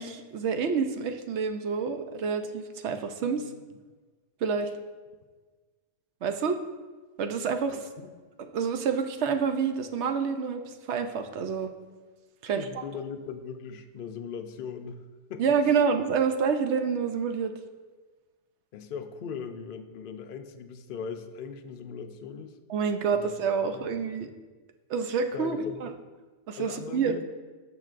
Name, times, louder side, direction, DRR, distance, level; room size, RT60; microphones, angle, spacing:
voice 1, 0.0-3.5 4.4-4.7 6.2-6.6 7.2-7.8 8.5-11.7 12.4-12.6 15.4-17.5 22.7-24.3 24.9-25.9 26.5-27.2, right 6 dB, 65° right, 7 dB, 0.8 m, -28 dB
voice 2, 7.7-8.1 12.5-15.0 15.3-15.6 18.7-22.6 23.1-23.3 23.6-23.9 25.3-25.8 26.6-27.2, left 6 dB, 70° left, 7 dB, 0.5 m, -39 dB
13.5 x 6.0 x 2.5 m, 1.4 s
omnidirectional pair, 1.4 m